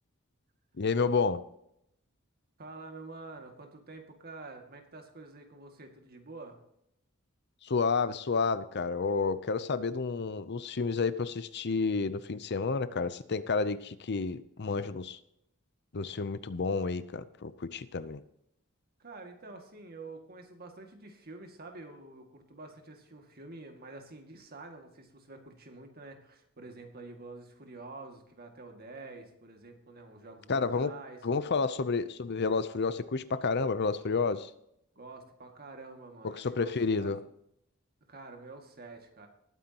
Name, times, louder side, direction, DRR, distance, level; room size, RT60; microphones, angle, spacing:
voice 1, 0.8-1.4 7.6-15.2 15.9-18.2 30.5-30.9 31.2-34.5 36.2-37.2, left 4 dB, 50° left, 14 dB, 0.7 m, -30 dB
voice 2, 2.6-6.6 19.0-31.2 35.0-37.2 38.1-39.3, right 3 dB, 45° right, 4 dB, 2.2 m, -48 dB
19.5 x 9.3 x 3.0 m, 0.76 s
head